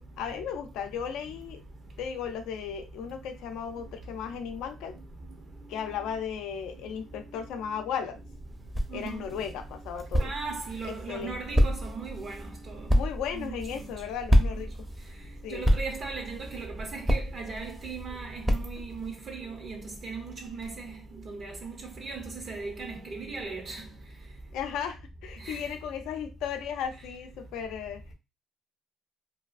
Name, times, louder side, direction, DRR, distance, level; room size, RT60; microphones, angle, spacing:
voice 1, 0.0-1.6 2.0-5.0 5.7-8.2 8.9-10.3 10.8-11.4 12.9-14.9 15.4-15.7 24.5-28.1, left 7 dB, 85° left, 0.4 m, -35 dB
sound 1, 8.2-19.1, equal, 15° right, 0.5 m, -29 dB
voice 2, 8.9-9.2 10.2-12.9 13.3-13.5 15.5-20.9 21.3-23.8 25.4-25.6, right 4 dB, 55° right, 0.6 m, -38 dB
2.7 x 2.3 x 2.4 m
cardioid pair, 80°, 0 cm